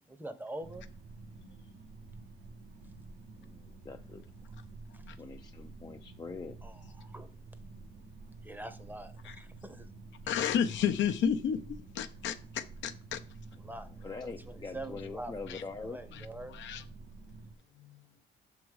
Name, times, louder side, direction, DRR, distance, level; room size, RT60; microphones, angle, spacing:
voice 1, 0.2-0.9 4.9-5.0 6.6-7.4 8.4-9.9 13.6-13.9 14.2-15.3 15.8-16.6, right 1 dB, 10° right, 0.8 m, -44 dB
sound 1, 0.6-17.6, right 3 dB, 75° right, 1.0 m, -50 dB
voice 2, 3.4-4.3 5.2-6.6 13.5-13.6 14.0-16.0, left 4 dB, 20° left, 0.4 m, -43 dB
voice 3, 10.2-13.2 15.5-15.6 16.5-16.8 17.8-18.0, left 8 dB, 70° left, 0.6 m, -32 dB
6.1 x 3.7 x 4.7 m
cardioid pair, 90°, 20 cm